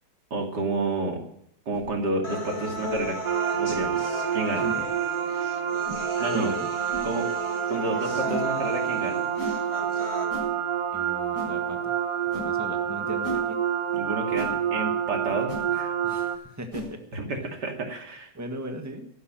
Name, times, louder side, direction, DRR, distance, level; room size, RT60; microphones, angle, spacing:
voice 1, 0.3-1.2 1.7-3.2 3.5-4.0 4.3-4.7 6.2-6.5 7.0-7.3 7.7-9.2 13.9-16.0 17.1-18.3, right 3 dB, 85° right, 2 dB, 3.1 m, -30 dB
sound 1, 1.7-1.9 2.8-3.0 3.7-3.8 4.7-4.9 5.8-6.0 6.9-7.1 8.3-8.5 9.4-9.6 10.3-10.5 11.3-11.5 12.3-12.5 13.2-13.4 14.3-14.5 15.5-15.6 16.7-16.9, left 1 dB, 10° left, 7.9 m, -36 dB
sound 2, 2.2-10.2, left 2 dB, 40° left, 3.2 m, -36 dB
sound 3, 3.2-16.4, right 8 dB, 60° right, 1.5 m, -28 dB
voice 2, 4.5-4.8 6.3-6.7 10.9-11.9 12.3-13.6 16.0-17.0 18.3-19.1, right 1 dB, 10° right, 5 dB, 1.5 m, -37 dB
12.5 x 11.5 x 7.5 m, 0.71 s
omnidirectional pair, 1.7 m